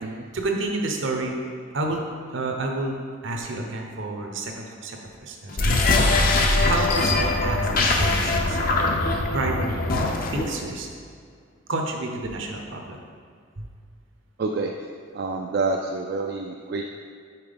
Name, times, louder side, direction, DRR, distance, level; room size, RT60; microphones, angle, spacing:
voice 1, 0.3-1.4 1.7-2.0 2.3-3.0 3.2-5.8 6.5-8.6 9.3-9.8 10.3-10.9 11.7-13.0 13.6-13.7, right 2 dB, 65° right, 2 dB, 0.8 m, -29 dB
sound 1, 5.5-10.6, left 2 dB, 45° left, 0.6 m, -22 dB
voice 2, 14.4-14.7 15.1-16.9, right 3 dB, 50° right, 1 dB, 0.3 m, -27 dB
5.7 x 4.4 x 5.1 m, 2.2 s
head